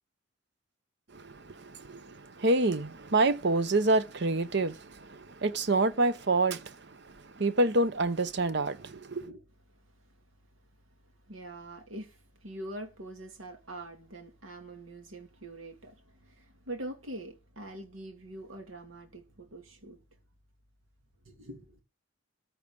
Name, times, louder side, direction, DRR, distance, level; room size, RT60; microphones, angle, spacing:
voice 1, 1.1-9.3, right 2 dB, 55° right, 0.8 m, -28 dB
voice 2, 11.3-20.0 21.2-21.8, right 1 dB, 90° right, 2.5 m, -44 dB
14.0 x 4.8 x 7.0 m
head